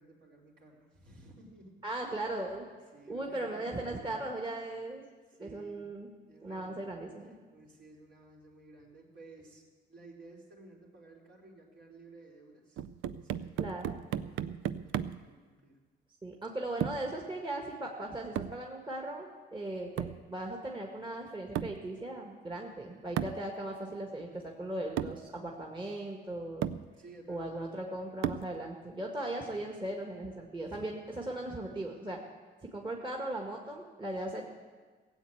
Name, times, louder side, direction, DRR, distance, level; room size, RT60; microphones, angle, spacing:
voice 1, 0.0-1.8 2.9-3.8 5.3-5.9 6.3-6.8 7.2-9.6 9.9-12.8 13.1-15.8 24.2-24.5 26.9-27.7 30.6-30.8, right 2 dB, 65° right, -3 dB, 4.2 m, -55 dB
voice 2, 1.8-2.7 3.1-5.0 5.4-6.1 6.4-7.3 13.6-14.0 16.2-26.7 27.3-32.2 32.7-34.5, right 1 dB, 25° right, 0 dB, 1.8 m, -38 dB
sound 1, 12.8-15.3 16.8-17.1 18.4-18.6 20.0-20.3 21.6-21.9 23.2-23.5 24.4-24.5 25.0-25.3 26.1-26.2 26.6-26.9 28.2-28.6, right 10 dB, 80° right, 0.5 m, -35 dB
16.5 x 8.1 x 8.0 m, 1.5 s
cardioid pair, 90°, 20 cm